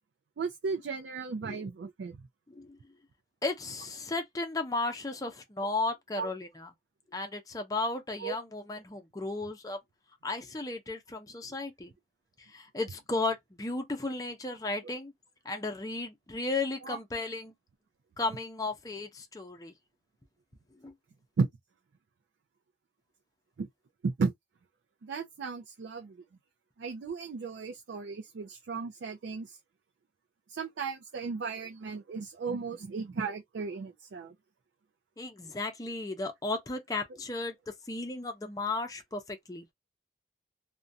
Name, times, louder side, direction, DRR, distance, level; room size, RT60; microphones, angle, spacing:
voice 1, 0.4-2.2 6.2-6.3 8.2-8.3 16.8-17.0 21.4-21.5 23.6-23.7 24.0-24.3 25.0-26.2 26.8-29.6 30.5-34.3, right 4 dB, 85° right, 0.4 m, -35 dB
voice 2, 2.5-2.8 3.4-6.7 7.1-9.8 10.2-11.9 12.4-15.1 15.4-17.5 18.2-19.7 20.8-20.9 35.2-39.7, left 3 dB, 20° left, 0.5 m, -35 dB
2.4 x 2.1 x 2.6 m
head